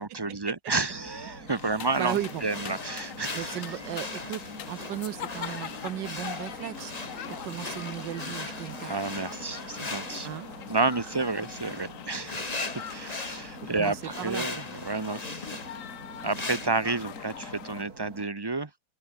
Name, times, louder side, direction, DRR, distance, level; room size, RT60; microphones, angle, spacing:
voice 1, 0.0-3.6 8.8-10.3 10.7-12.6 12.9-15.4 16.2-18.7, right 3 dB, 25° right, 0.6 m, -30 dB
sound 1, 0.9-18.3, right 2 dB, 55° right, 5.5 m, -47 dB
sound 2, 1.5-17.8, left 9 dB, 55° left, 1.2 m, -43 dB
voice 2, 1.6-2.7 3.3-6.9 7.3-9.0 10.2-10.5 13.2-13.4 13.7-14.5, right 12 dB, 85° right, 1.5 m, -36 dB
sound 3, 1.9-16.7, left 3 dB, 20° left, 1.7 m, -40 dB
omnidirectional pair, 1.9 m